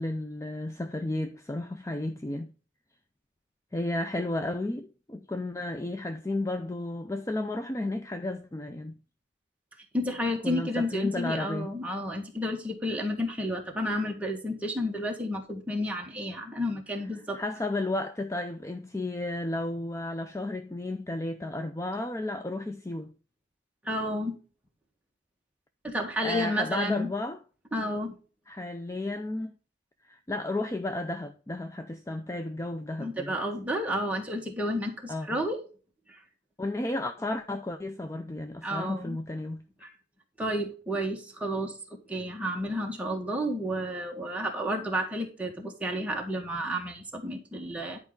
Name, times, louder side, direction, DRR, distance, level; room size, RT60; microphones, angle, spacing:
voice 1, 0.0-2.5 3.7-9.0 10.4-11.7 17.3-23.1 26.2-27.4 28.5-29.5 30.0-33.4 35.1-35.4 36.6-39.6, left 2 dB, 15° left, 0.4 m, -33 dB
voice 2, 9.9-17.4 23.8-24.4 25.8-27.1 27.7-28.1 33.0-35.6 36.1-36.2 38.6-39.2 39.8-39.9 40.4-48.0, equal, 5° right, 1.6 m, -31 dB
10.5 x 4.7 x 3.8 m
head